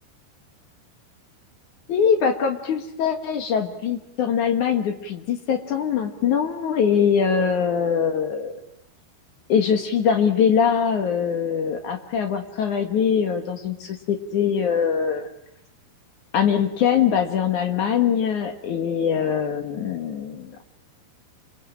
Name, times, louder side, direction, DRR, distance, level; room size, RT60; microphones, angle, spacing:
voice 1, 1.9-8.6 9.5-15.3 16.3-20.6, left 7 dB, 65° left, 5 dB, 2.0 m, -22 dB
29.0 x 23.0 x 8.7 m, 0.81 s
omnidirectional pair, 5.8 m